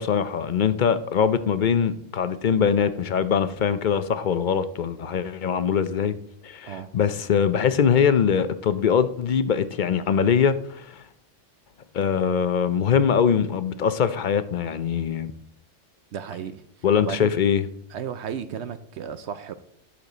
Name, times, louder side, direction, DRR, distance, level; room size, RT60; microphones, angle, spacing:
voice 1, 0.0-6.1 6.4-11.0 11.9-15.3 16.8-17.6, left 7 dB, 50° left, 0.6 m, -22 dB
voice 2, 16.1-16.6 17.0-17.3 17.9-19.5, right 8 dB, 70° right, 0.8 m, -34 dB
11.0 x 6.7 x 3.9 m
omnidirectional pair, 1.3 m